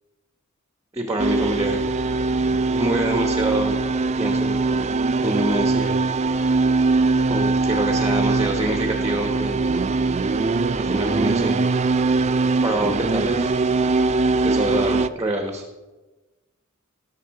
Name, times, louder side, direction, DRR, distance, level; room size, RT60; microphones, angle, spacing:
voice 1, 0.9-1.8 2.7-3.8 4.2-4.6 5.2-6.0 7.3-9.6 10.8-11.6 12.6-13.5 14.4-15.6, right 1 dB, 15° right, 4 dB, 1.0 m, -25 dB
sound 1, 1.2-15.1, right 3 dB, 30° right, 0.4 m, -21 dB
17.5 x 6.7 x 4.7 m, 1.1 s
head